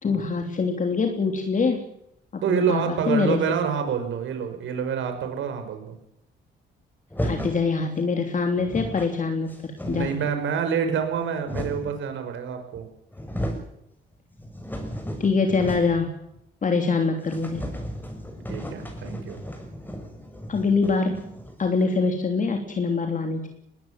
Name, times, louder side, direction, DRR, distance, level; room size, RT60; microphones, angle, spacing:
voice 1, 0.0-1.8 2.3-3.4 7.2-10.1 15.2-16.1 16.6-17.7 20.5-21.3 21.6-23.5, left 4 dB, 40° left, 4 dB, 3.2 m, -24 dB
voice 2, 2.4-5.9 9.8-12.9 18.5-19.4, right 7 dB, 75° right, 7 dB, 5.3 m, -27 dB
sound 1, 7.1-7.7 8.3-8.4 8.6-9.1 9.5-10.4 11.0-12.0 12.7-12.8 13.1-13.7 14.1-16.1 16.3-16.4 16.8-16.9 17.2-21.7, equal, 10° left, 6.7 m, -34 dB
21.0 x 18.5 x 7.6 m, 0.79 s
cardioid pair, 90°, 20 cm